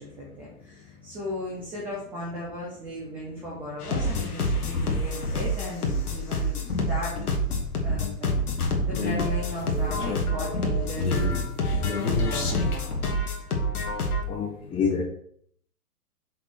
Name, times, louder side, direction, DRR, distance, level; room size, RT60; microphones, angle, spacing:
voice 1, 0.0-7.3 7.8-8.3 8.6-11.5 11.9-13.2 14.6-14.8, left 1 dB, 5° right, -5 dB, 0.5 m, -37 dB
sound 1, 3.8-14.2, left 1 dB, 70° left, 2.1 m, -27 dB
voice 2, 14.3-15.1, left 5 dB, 10° left, 2 dB, 1.1 m, -27 dB
6.2 x 4.1 x 6.2 m, 0.63 s
hypercardioid pair, 140°, 46 cm